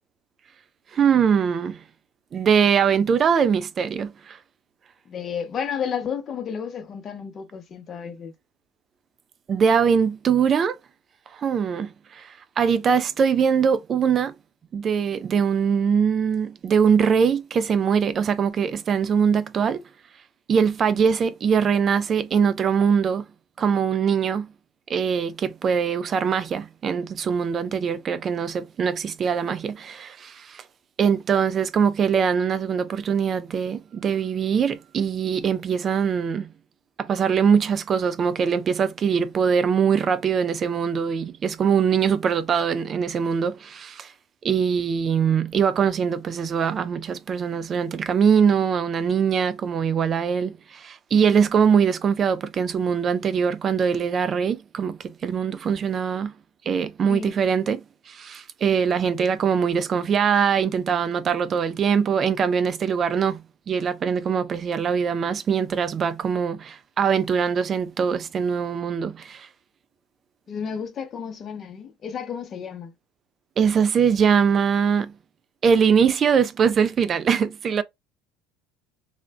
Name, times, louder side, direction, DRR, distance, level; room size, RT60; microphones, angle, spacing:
voice 1, 0.9-1.8 2.3-4.4 9.5-10.8 11.3-14.3 14.7-19.8 20.5-23.2 23.6-24.5 24.9-30.6 31.0-36.5 37.0-44.1 44.4-56.3 56.7-57.8 58.1-63.4 63.7-69.5 73.6-75.1 75.6-77.8, right 7 dB, 40° right, 0.3 m, -22 dB
voice 2, 5.1-8.3 57.1-57.4 70.5-72.9, left 7 dB, 40° left, 0.7 m, -32 dB
2.4 x 2.1 x 3.2 m
supercardioid pair, 95°, 0 cm